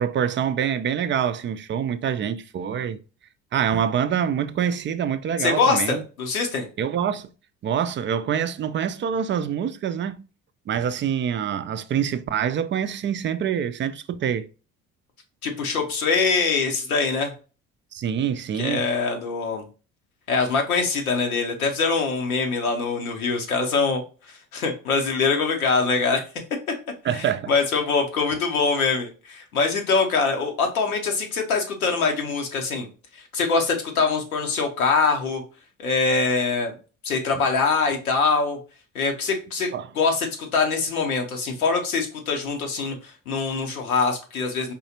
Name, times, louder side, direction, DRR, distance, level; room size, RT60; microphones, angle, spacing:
voice 1, 0.0-3.0 3.5-6.0 6.8-7.3 7.6-10.2 10.7-14.5 17.9-18.8 27.0-27.5 39.7-39.9, right 8 dB, 30° right, 0.4 m, -25 dB
voice 2, 5.4-6.7 15.4-17.3 18.6-19.6 20.3-24.0 24.3-26.2 27.1-32.9 33.1-35.4 35.8-36.7 37.0-38.6 38.9-39.7 39.9-44.7, left 4 dB, 85° left, 1.0 m, -23 dB
4.3 x 3.2 x 2.8 m
hypercardioid pair, 55°, 42 cm